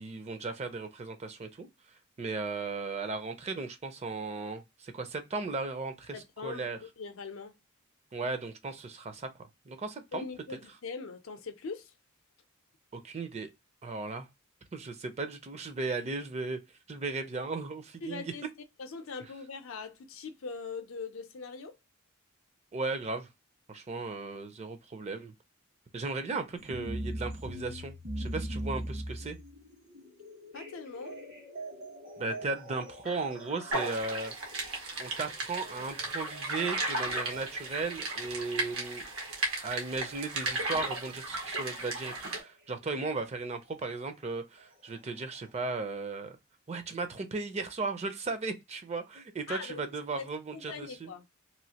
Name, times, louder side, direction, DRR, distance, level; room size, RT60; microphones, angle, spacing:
voice 1, 0.0-1.7 2.2-6.1 6.4-6.8 8.1-9.3 9.7-10.2 12.9-13.5 13.8-14.3 14.7-16.6 16.9-18.2 22.7-23.3 23.7-25.3 25.9-29.4 32.2-34.3 35.0-39.0 39.6-46.4 46.7-51.1, right 3 dB, 30° right, 0.5 m, -36 dB
voice 2, 6.1-7.6 10.1-11.9 18.0-18.5 18.8-21.8 30.5-31.2 49.5-49.8 50.1-50.3 50.5-51.3, left 4 dB, 75° left, 0.5 m, -41 dB
sound 1, 26.6-42.5 43.7-43.8 44.6-44.7 45.3-45.4, equal, 70° right, 1.4 m, -43 dB
sound 2, 33.7-42.4, right 2 dB, 85° right, 1.0 m, -35 dB
3.0 x 2.4 x 2.7 m
head